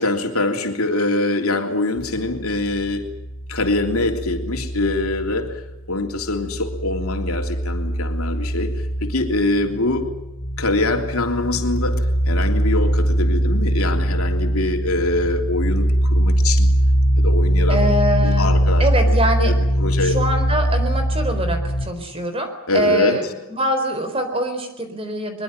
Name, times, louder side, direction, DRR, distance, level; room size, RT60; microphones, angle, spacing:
voice 1, 0.0-3.1 3.5-5.6 5.9-8.7 9.0-10.1 10.6-16.7 17.2-17.8 18.2-20.2 22.7-23.2, left 2 dB, 90° left, 4 dB, 3.3 m, -23 dB
sound 1, 2.0-5.8 6.1-21.9, equal, 50° left, 2.6 m, -21 dB
voice 2, 17.7-18.5 18.8-19.5 20.0-25.4, right 1 dB, 25° right, 7 dB, 4.2 m, -24 dB
22.5 x 22.5 x 7.8 m, 0.95 s
head